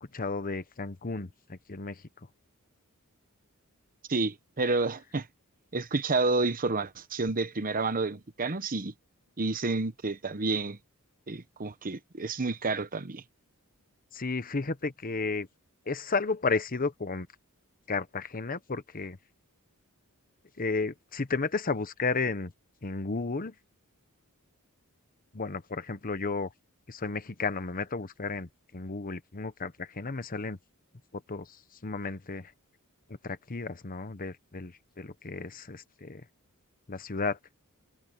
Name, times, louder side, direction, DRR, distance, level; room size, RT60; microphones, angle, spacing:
voice 1, 0.0-2.0 14.1-15.5 15.9-17.3 17.9-19.2 20.6-22.5 22.8-23.5 25.3-26.5 26.9-30.6 31.1-31.6 31.8-32.5 33.2-36.2 36.9-37.4, left 4 dB, 40° left, 1.0 m, -33 dB
voice 2, 4.1-5.3 5.7-8.9 9.4-10.8 11.3-13.2, right 3 dB, 40° right, 1.1 m, -29 dB
open air
head